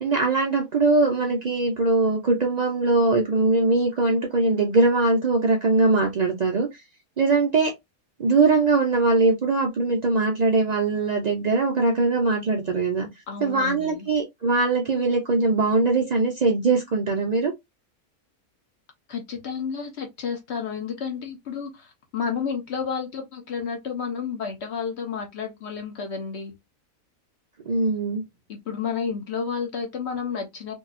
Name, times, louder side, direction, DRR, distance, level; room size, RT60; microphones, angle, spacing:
voice 1, 0.0-6.8 7.2-7.7 8.2-13.1 13.4-17.5 27.7-28.2, right 3 dB, 85° right, 0.3 m, -21 dB
voice 2, 13.3-14.1 19.1-26.5 28.5-30.7, left 6 dB, 55° left, 1.1 m, -31 dB
2.8 x 2.7 x 2.4 m
omnidirectional pair, 1.5 m